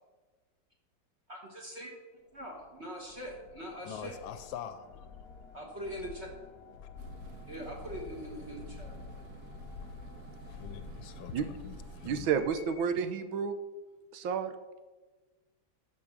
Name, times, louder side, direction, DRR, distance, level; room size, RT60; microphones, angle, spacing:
voice 1, 1.3-1.9 2.3-4.2 5.5-6.3 7.5-8.9, equal, 35° right, 0 dB, 1.6 m, -42 dB
sound 1, 2.3-13.0, left 6 dB, 55° left, 1.2 m, -50 dB
voice 2, 3.8-5.1 10.5-12.3, left 10 dB, 85° left, 11 dB, 1.3 m, -44 dB
sound 2, 7.0-12.2, right 3 dB, 60° right, 1.4 m, -49 dB
voice 3, 12.0-13.5 14.1-14.5, right 7 dB, 85° right, 9 dB, 1.6 m, -30 dB
10.5 x 5.2 x 7.1 m, 1.2 s
omnidirectional pair, 2.1 m